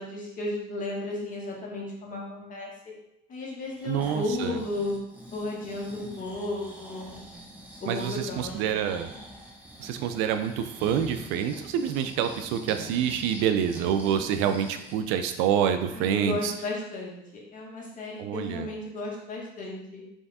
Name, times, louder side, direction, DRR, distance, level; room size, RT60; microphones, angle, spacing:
voice 1, 0.0-2.7 3.3-4.9 5.3-7.2 7.8-8.9 15.9-20.0, left 2 dB, 45° left, -3 dB, 1.6 m, -34 dB
Breathing, 3.6-15.1 15.5-15.6, equal, 10° right, 1.0 m, -44 dB
voice 2, 3.8-4.5 7.9-9.1 9.8-16.5 18.2-18.7, right 9 dB, 85° right, 8 dB, 0.5 m, -27 dB
3.6 x 3.3 x 4.1 m, 0.81 s
supercardioid pair, 95°, 19 cm